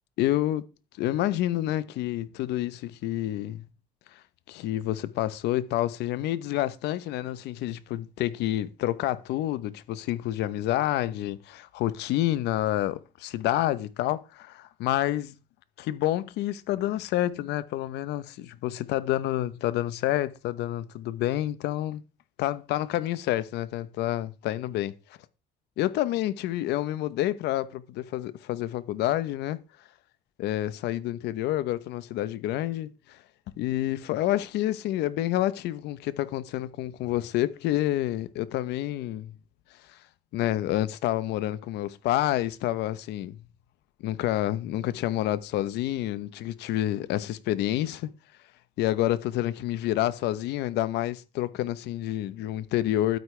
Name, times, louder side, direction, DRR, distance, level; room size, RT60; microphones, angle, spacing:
voice 1, 0.2-0.6 1.0-3.6 4.1-15.3 15.8-22.0 22.4-24.9 25.8-29.6 30.4-33.2 33.6-39.3 39.9-40.0 40.3-43.4 44.0-48.1 48.8-53.2, left 14 dB, 85° left, 1.0 m, -28 dB
12.0 x 9.5 x 3.3 m
cardioid pair, 110°, 17 cm